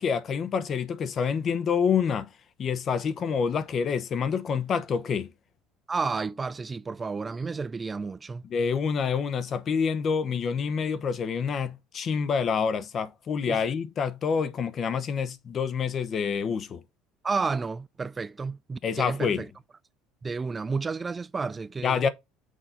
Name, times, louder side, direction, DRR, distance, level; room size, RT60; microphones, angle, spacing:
voice 1, 0.0-2.3 2.6-5.3 8.5-16.8 18.8-19.4 21.8-22.1, left 6 dB, 45° left, 0.9 m, -27 dB
voice 2, 5.9-8.4 13.5-13.6 17.2-19.5 20.2-22.0, right 4 dB, 25° right, 0.3 m, -31 dB
6.5 x 4.0 x 3.8 m
supercardioid pair, 95°, 0 cm